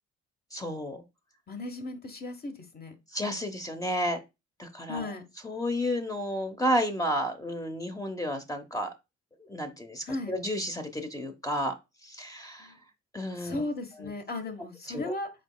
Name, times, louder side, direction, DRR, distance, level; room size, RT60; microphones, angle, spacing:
voice 1, 0.5-1.0 3.1-4.2 4.6-5.1 5.4-8.9 9.5-11.7 12.0-12.7 13.1-13.6 14.9-15.1, equal, 10° left, 5 dB, 0.8 m, -31 dB
voice 2, 1.5-2.9 4.9-5.3 10.0-10.3 12.6-12.8 13.4-15.3, left 2 dB, 30° left, 8 dB, 1.1 m, -36 dB
5.1 x 4.0 x 2.2 m, 0.24 s
cardioid pair, 90°, 30 cm